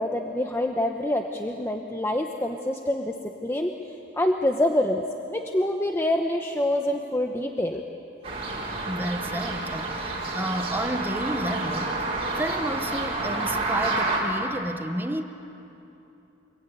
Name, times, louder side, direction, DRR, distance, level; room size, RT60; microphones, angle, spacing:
voice 1, 0.0-3.7 4.2-5.0 5.3-7.8, left 1 dB, 10° left, 3 dB, 0.9 m, -26 dB
sound 1, 8.2-14.2, right 2 dB, 30° right, 4.7 m, -29 dB
voice 2, 8.9-15.2, right 1 dB, 10° right, 7 dB, 1.1 m, -31 dB
26.5 x 22.5 x 9.2 m, 2.9 s
head